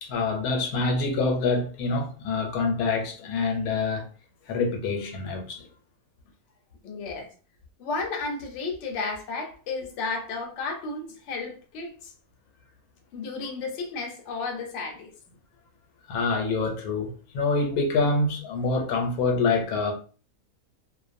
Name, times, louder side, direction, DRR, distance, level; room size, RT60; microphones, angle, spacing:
voice 1, 0.0-4.1 4.5-5.7 16.1-19.9, left 3 dB, 80° left, 1.1 m, -26 dB
voice 2, 6.8-7.3 7.8-12.1 13.1-15.1, left 3 dB, 65° left, 0.9 m, -33 dB
2.5 x 2.1 x 2.5 m
omnidirectional pair, 1.6 m